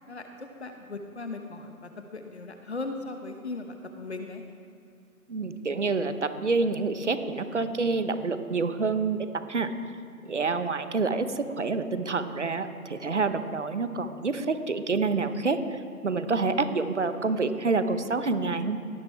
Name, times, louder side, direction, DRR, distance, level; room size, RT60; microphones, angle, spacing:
voice 1, 0.1-4.4, left 3 dB, 45° left, 5 dB, 1.1 m, -38 dB
voice 2, 5.3-9.7 10.3-18.8, right 4 dB, 50° right, 10 dB, 0.9 m, -28 dB
17.0 x 8.7 x 3.4 m, 2.4 s
hypercardioid pair, 175°, 44 cm